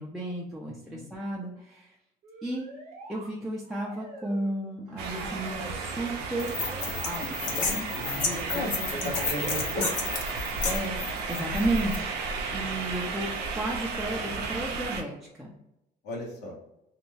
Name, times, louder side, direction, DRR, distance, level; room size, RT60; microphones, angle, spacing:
voice 1, 0.0-2.0 2.4-2.7 3.1-6.6 7.0-9.1 10.7-13.3 13.5-15.5, right 1 dB, ahead, -4 dB, 0.5 m, -33 dB
voice 2, 0.7-1.1 7.9-9.9 16.0-16.6, left 1 dB, 85° left, -1 dB, 1.0 m, -36 dB
sound 1, 2.2-3.3 3.6-4.6 4.9-5.9 6.4-7.2 7.6-8.6 9.2-10.0, right 2 dB, 45° right, 0.8 m, -46 dB
sound 2, 5.0-15.0, right 4 dB, 80° right, 0.5 m, -33 dB
sound 3, 6.4-12.0, left 4 dB, 50° left, 0.8 m, -32 dB
2.6 x 2.2 x 3.1 m, 0.87 s
cardioid pair, 110°, 17 cm